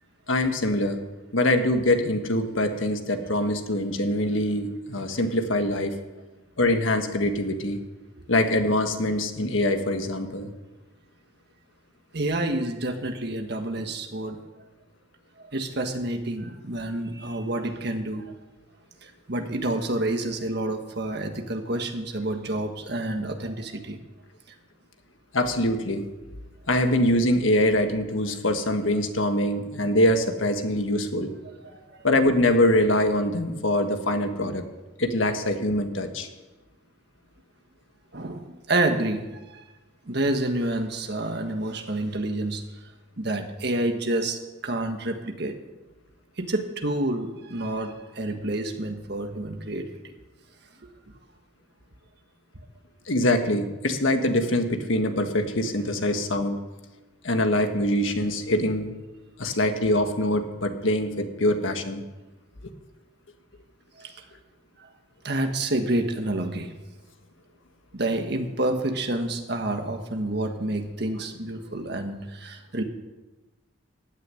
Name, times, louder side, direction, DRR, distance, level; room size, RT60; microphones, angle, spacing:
voice 1, 0.3-1.0 1.3-5.9 6.6-7.8 8.3-10.5 25.3-26.0 26.7-31.3 32.0-34.6 35.0-36.3 53.1-56.6 57.2-58.9 59.4-62.0, left 1 dB, 75° left, 6 dB, 1.5 m, -24 dB
voice 2, 12.1-14.4 15.4-18.3 19.0-24.0 31.6-32.1 38.1-39.6 40.0-42.7 43.2-45.6 46.4-50.1 64.0-64.3 64.8-64.9 65.2-66.7 67.9-72.8, right 1 dB, 55° right, 5 dB, 1.5 m, -29 dB
15.0 x 6.7 x 9.8 m, 1.1 s
head